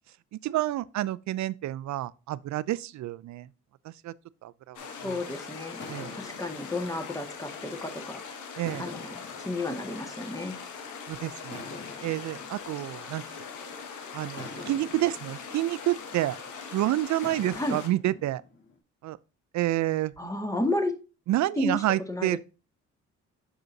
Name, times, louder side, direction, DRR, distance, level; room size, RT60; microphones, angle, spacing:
voice 1, 0.3-3.5 3.8-4.1 4.4-5.2 5.9-6.1 8.6-8.9 11.1-11.6 12.0-13.2 14.1-16.4 16.7-18.4 19.0-19.2 19.5-20.1 21.3-22.4, right 14 dB, 70° right, 0.5 m, -29 dB
sound 1, 4.7-17.9, left 6 dB, 85° left, 1.6 m, -41 dB
sound 2, 4.9-5.2 5.8-8.1 8.7-10.9 11.5-13.7 14.4-16.6 17.2-18.8, left 3 dB, 40° left, 2.5 m, -47 dB
voice 2, 5.0-5.8 6.1-8.2 8.8-10.6 17.5-17.8 20.2-21.0 21.6-21.8 22.1-22.4, left 2 dB, 10° left, 1.7 m, -32 dB
sound 3, 12.4-17.5, left 2 dB, 60° left, 3.6 m, -55 dB
7.8 x 6.1 x 2.7 m
cardioid pair, 90°, 30 cm